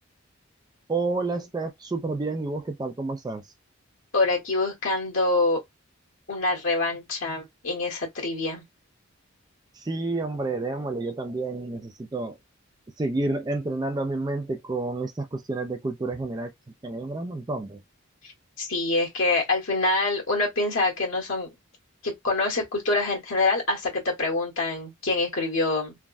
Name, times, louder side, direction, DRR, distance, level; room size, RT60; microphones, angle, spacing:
voice 1, 0.9-3.4 9.9-12.3 13.0-16.5 16.8-17.8, right 2 dB, 20° right, 0.3 m, -29 dB
voice 2, 4.1-5.6 6.3-8.6 18.2-18.3 18.6-21.5 22.0-25.9, left 2 dB, 65° left, 1.4 m, -25 dB
3.3 x 2.1 x 2.5 m
head